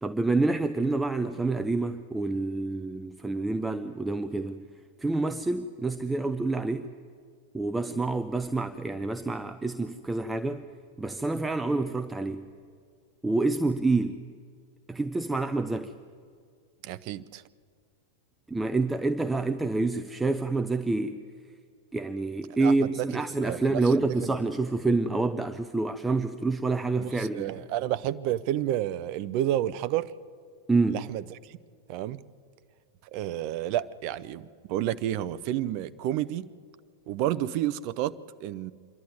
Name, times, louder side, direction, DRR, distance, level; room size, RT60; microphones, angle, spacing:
voice 1, 0.0-4.6 5.0-6.9 7.5-10.6 11.0-12.4 13.2-14.2 14.9-15.9 18.5-21.2 21.9-27.5 30.7-31.0, right 3 dB, 10° right, 0.6 m, -27 dB
voice 2, 16.8-17.4 22.6-24.3 27.0-30.1 30.9-31.6 31.9-32.2 33.0-36.5 37.1-38.7, right 12 dB, 45° right, 0.6 m, -31 dB
26.5 x 11.5 x 9.3 m
figure-of-eight pair, 90°, 0 cm